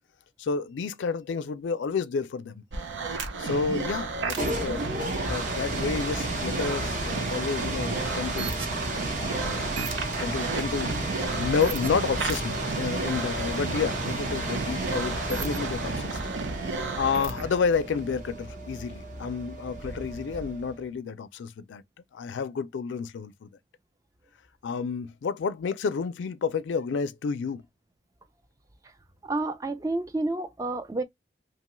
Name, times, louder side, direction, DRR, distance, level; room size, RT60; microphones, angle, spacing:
voice 1, 0.4-2.6 3.4-8.5 9.2-9.8 10.2-11.0 11.3-16.2 16.5-21.8 22.1-23.5 24.6-27.6, left 5 dB, 75° left, 0.4 m, -30 dB
sound 1, 2.7-17.5, right 4 dB, 85° right, 0.6 m, -33 dB
sound 2, 4.1-20.8, right 2 dB, 45° right, 0.8 m, -33 dB
voice 2, 29.2-31.0, right 2 dB, 20° right, 0.3 m, -30 dB
2.8 x 2.2 x 2.9 m
head